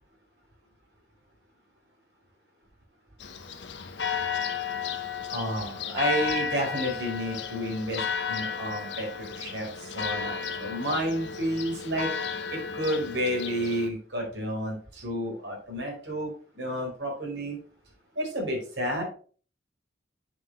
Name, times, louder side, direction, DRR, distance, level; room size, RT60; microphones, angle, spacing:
Church bell, 3.2-13.9, left 6 dB, 80° left, 1.0 m, -33 dB
voice 1, 5.3-12.1 12.5-17.6 18.1-19.0, equal, 85° right, 0 dB, 4.3 m, -31 dB
9.6 x 5.8 x 3.2 m, 0.39 s
head